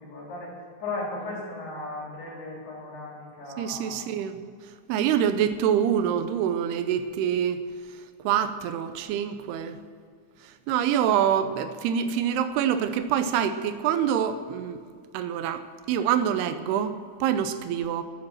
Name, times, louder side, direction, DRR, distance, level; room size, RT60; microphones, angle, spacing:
voice 1, 0.0-4.3, left 2 dB, 80° left, -4 dB, 5.4 m, -37 dB
voice 2, 3.6-4.4 4.9-7.6 8.2-9.8 10.7-14.8 15.1-15.6 15.9-18.0, right 9 dB, 90° right, 11 dB, 2.7 m, -25 dB
12.5 x 9.3 x 7.4 m, 2.1 s
omnidirectional pair, 4.5 m